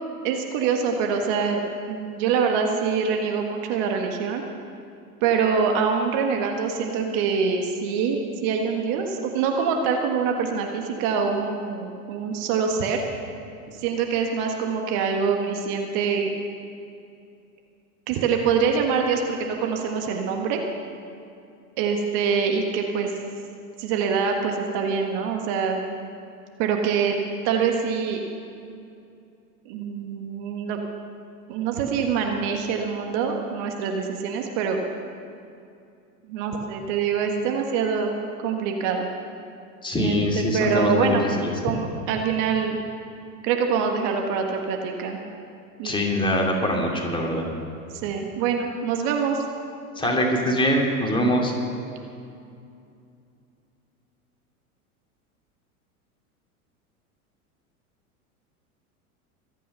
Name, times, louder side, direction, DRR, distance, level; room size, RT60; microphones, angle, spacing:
voice 1, 0.2-4.4 5.2-13.0 13.7-16.3 18.1-20.6 21.8-23.1 23.8-25.8 26.6-27.2 27.4-28.2 29.6-30.8 31.5-34.8 36.3-38.1 38.4-39.1 40.0-40.1 40.5-41.2 41.6-42.8 43.4-45.2 45.8-45.9 47.9-49.4 50.0-50.1, right 6 dB, 50° right, 3 dB, 1.7 m, -25 dB
voice 2, 39.8-41.5 45.8-47.5 50.0-51.5, equal, 10° left, -1 dB, 2.9 m, -23 dB
24.5 x 9.3 x 5.7 m, 2.5 s
figure-of-eight pair, 85°, 45 cm